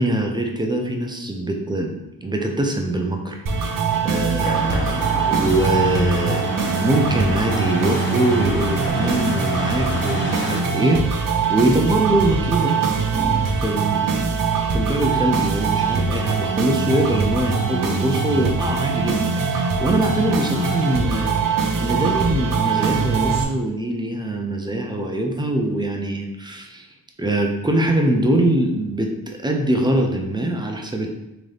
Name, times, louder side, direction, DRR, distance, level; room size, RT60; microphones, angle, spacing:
voice 1, 0.0-6.5 6.8-12.8 13.1-14.3 14.7-21.4 21.8-26.9 27.2-31.1, right 1 dB, 10° right, 2 dB, 0.5 m, -23 dB
sound 1, 3.5-23.4, right 5 dB, 60° right, 0.7 m, -22 dB
sound 2, 4.4-10.6, left 2 dB, 30° left, 0.6 m, -30 dB
3.8 x 2.6 x 3.3 m, 0.93 s
cardioid pair, 100°, 37 cm